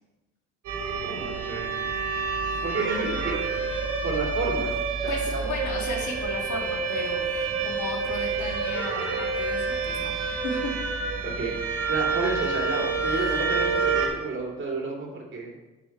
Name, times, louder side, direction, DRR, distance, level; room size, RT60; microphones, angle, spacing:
sound 1, 0.6-14.1, right 4 dB, 80° right, 3.1 m, -28 dB
voice 1, 1.0-2.0 2.6-3.4 4.0-5.5 11.2-15.5, right 3 dB, 40° right, -1 dB, 2.5 m, -32 dB
voice 2, 5.1-7.3 7.6-10.1 10.4-10.8, left 2 dB, 75° left, 0 dB, 2.3 m, -34 dB
9.0 x 6.1 x 4.5 m, 1.1 s
cardioid pair, 90°, 30 cm